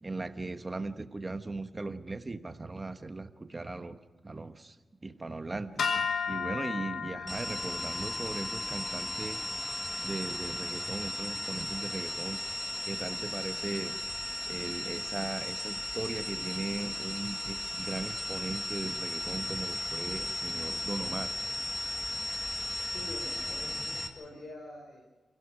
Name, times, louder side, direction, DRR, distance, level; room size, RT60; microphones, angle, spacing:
voice 1, 0.0-4.8 5.0-9.4 10.0-12.4 12.8-14.0 14.5-21.3, right 3 dB, 20° right, 9 dB, 1.1 m, -38 dB
sound 1, 5.8-12.1, left 6 dB, 80° left, 2.4 m, -37 dB
sound 2, 7.3-24.1, left 1 dB, 10° left, 1.9 m, -36 dB
voice 2, 22.9-25.0, left 1 dB, 65° left, 0 dB, 4.8 m, -46 dB
29.0 x 16.5 x 6.1 m, 1.3 s
wide cardioid pair, 175°, 0 cm